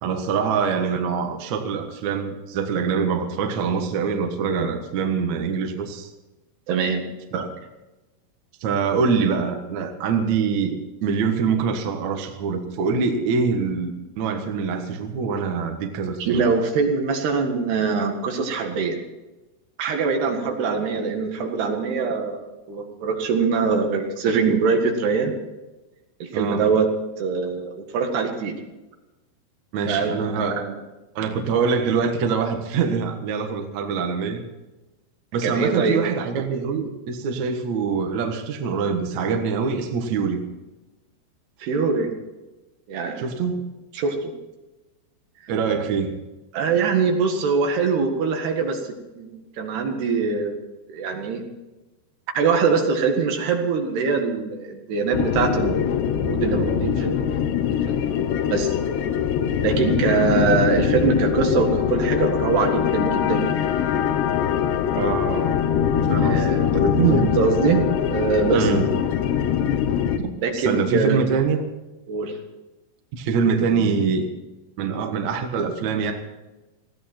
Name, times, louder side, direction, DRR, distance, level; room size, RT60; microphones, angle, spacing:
voice 1, 0.0-6.1 7.3-7.5 8.6-16.4 26.3-26.7 29.7-30.7 31.2-34.4 35.3-40.4 43.2-43.6 45.5-46.2 64.9-65.6 66.1-67.4 68.5-68.9 70.2-71.6 73.1-74.3 74.8-76.1, right 5 dB, 55° right, 4 dB, 2.4 m, -24 dB
voice 2, 6.7-7.0 16.2-19.0 19.8-25.3 26.2-26.9 27.2-28.5 29.9-30.7 35.4-36.0 41.6-42.1 42.9-43.2 44.0-44.3 46.5-48.8 49.2-50.6 50.9-51.4 52.3-57.4 57.9-58.0 58.5-58.7 59.6-63.5 66.2-66.6 67.1-68.7 70.4-71.2 72.1-72.4, right 5 dB, 75° right, 3 dB, 3.8 m, -23 dB
sound 1, 55.1-70.2, left 8 dB, 85° left, 3.3 m, -22 dB
19.5 x 15.5 x 4.4 m, 1.1 s
omnidirectional pair, 4.8 m